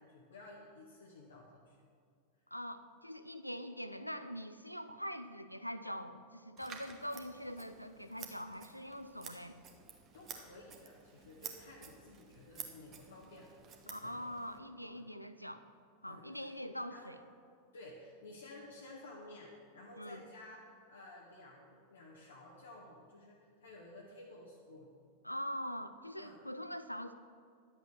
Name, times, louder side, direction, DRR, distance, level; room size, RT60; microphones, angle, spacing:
voice 1, 0.0-1.8 10.1-13.5 13.8-14.2 14.9-15.0 16.0-16.5 16.9-17.1 17.7-20.6 20.9-24.9 26.2-26.4, left 2 dB, 70° left, -4 dB, 1.5 m, -54 dB
voice 2, 2.5-9.6 13.9-15.6 16.0-17.2 20.0-20.2 25.2-27.1, equal, 90° left, 11 dB, 0.5 m, -43 dB
Scissors, 6.6-14.6, right 7 dB, 30° right, 1.3 m, -52 dB
11.0 x 8.1 x 6.1 m, 2.3 s
figure-of-eight pair, 90°, 0 cm